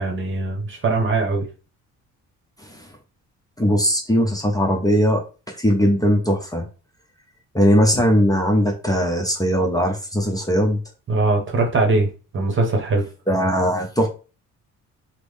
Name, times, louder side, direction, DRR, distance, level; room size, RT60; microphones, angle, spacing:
voice 1, 0.0-1.5 11.1-12.1 12.3-13.0, right 3 dB, 40° right, 2 dB, 1.0 m, -21 dB
voice 2, 3.6-5.2 5.6-6.6 7.5-10.8 13.3-14.1, equal, 10° left, 1 dB, 0.7 m, -19 dB
3.7 x 2.1 x 3.2 m, 0.34 s
cardioid pair, 90°, 30 cm